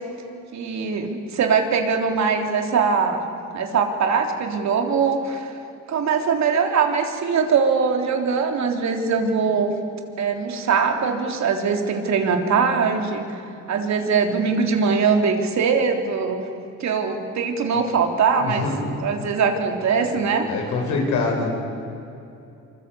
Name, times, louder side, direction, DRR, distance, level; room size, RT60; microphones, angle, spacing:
voice 1, 0.5-3.2 3.5-5.5 5.9-9.7 10.2-13.4 13.7-16.4 16.8-20.5, right 5 dB, 65° right, 3 dB, 3.5 m, -22 dB
voice 2, 18.4-18.8 20.5-21.5, left 3 dB, 85° left, 1 dB, 6.6 m, -24 dB
25.5 x 24.5 x 8.5 m, 2.7 s
cardioid pair, 90°, 30 cm